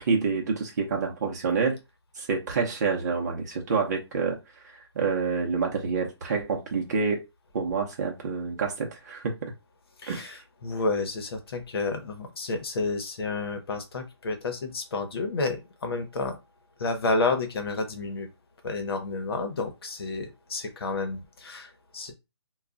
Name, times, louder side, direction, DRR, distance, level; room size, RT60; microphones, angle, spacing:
voice 1, 0.0-1.8 2.2-4.4 4.6-7.2 7.5-9.5 10.1-10.4, right 5 dB, 40° right, 0 dB, 0.7 m, -28 dB
voice 2, 10.0-16.4 16.8-18.3 18.6-22.1, left 3 dB, 60° left, 6 dB, 0.9 m, -30 dB
2.3 x 2.2 x 3.8 m, 0.24 s
hypercardioid pair, 165°, 15 cm